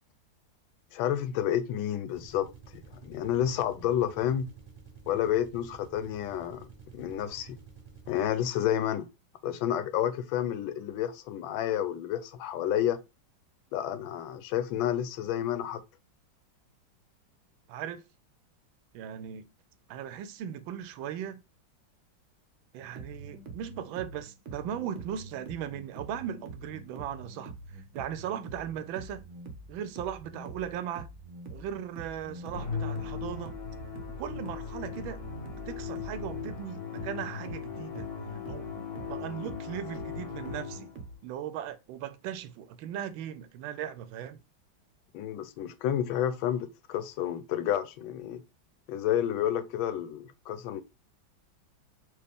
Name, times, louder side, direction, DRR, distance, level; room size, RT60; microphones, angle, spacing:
voice 1, 0.9-4.5 5.1-7.6 8.1-9.1 9.4-13.0 13.7-15.8 45.1-48.4 48.9-50.8, left 10 dB, 90° left, 1.4 m, -30 dB
sound 1, 2.0-8.6, right 5 dB, 25° right, 0.6 m, -51 dB
voice 2, 17.7-18.0 18.9-19.5 19.9-21.4 22.7-27.5 27.9-29.3 29.7-31.1 31.5-33.5 34.1-35.2 35.7-38.1 38.5-38.7 39.1-40.9 41.2-44.4, right 9 dB, 85° right, 1.4 m, -38 dB
sound 2, 22.8-41.2, right 3 dB, 65° right, 0.7 m, -45 dB
Musical instrument, 32.5-41.1, left 7 dB, 55° left, 1.5 m, -38 dB
4.9 x 2.4 x 3.4 m
omnidirectional pair, 2.1 m